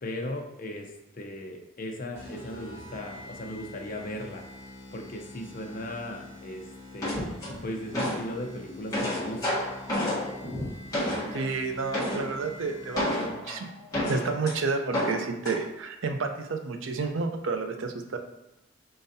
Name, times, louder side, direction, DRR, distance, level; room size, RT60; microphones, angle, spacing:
voice 1, 0.0-4.4 4.9-6.6 6.9-7.3 7.6-9.7, left 1 dB, 45° left, 2 dB, 0.6 m, -37 dB
sound 1, 2.2-13.5, left 2 dB, 15° right, 1.4 m, -46 dB
sound 2, 7.0-8.3 8.7-11.5 11.9-12.3 12.9-14.5 14.9-15.6, left 1 dB, 15° left, 1.1 m, -30 dB
voice 2, 11.3-13.7 14.1-18.2, right 4 dB, 70° right, 5 dB, 0.5 m, -30 dB
5.0 x 3.8 x 2.7 m, 0.91 s
head